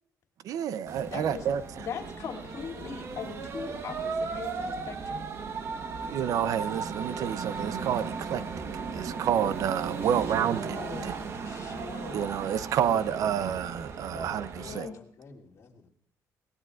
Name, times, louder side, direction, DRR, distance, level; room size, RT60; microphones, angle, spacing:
voice 1, 0.4-1.6 6.0-8.4 8.9-10.8 11.0-11.1 12.1-14.5 14.7-14.9, right 9 dB, 65° right, 0.6 m, -29 dB
sound 1, 0.9-14.8, right 5 dB, 45° right, 1.2 m, -36 dB
voice 2, 1.1-1.5 1.8-5.3 10.0-11.1 11.4-12.4 12.9-13.3 14.6-15.0, left 6 dB, 60° left, 2.8 m, -40 dB
voice 3, 14.1-15.9, left 5 dB, 40° left, 2.9 m, -48 dB
22.5 x 19.0 x 2.5 m
cardioid pair, 135°, 6 cm